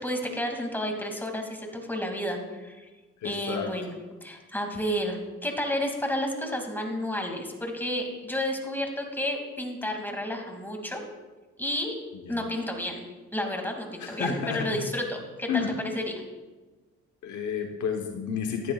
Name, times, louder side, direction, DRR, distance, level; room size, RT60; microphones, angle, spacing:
voice 1, 0.0-2.9 3.2-11.0 11.6-12.0 12.3-13.0 13.3-15.6 15.9-16.1, left 1 dB, 5° left, 2 dB, 2.6 m, -31 dB
voice 2, 3.2-3.7 12.3-12.5 14.0-14.7 15.5-15.8 17.2-18.7, left 6 dB, 70° left, 3 dB, 1.2 m, -31 dB
15.0 x 11.0 x 2.5 m, 1.2 s
supercardioid pair, 65°, 30 cm